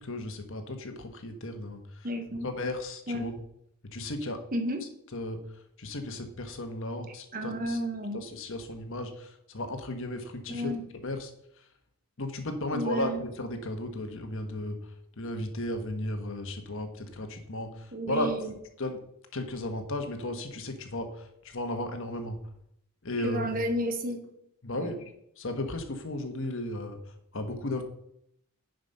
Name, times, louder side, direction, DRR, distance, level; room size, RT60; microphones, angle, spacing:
voice 1, 0.0-3.4 3.8-4.4 5.1-5.4 5.8-7.8 8.1-11.3 12.2-14.9 15.2-18.5 18.8-19.0 19.3-22.4 23.0-23.6 24.6-25.1 25.4-27.0 27.3-27.8, left 1 dB, 60° left, 6 dB, 1.4 m, -35 dB
voice 2, 2.0-2.5 3.1-3.3 4.5-4.8 7.3-8.2 10.5-10.8 12.7-13.2 17.9-18.5 23.2-24.3 24.7-24.9, equal, 40° right, 6 dB, 1.2 m, -31 dB
10.0 x 5.2 x 5.5 m, 0.73 s
head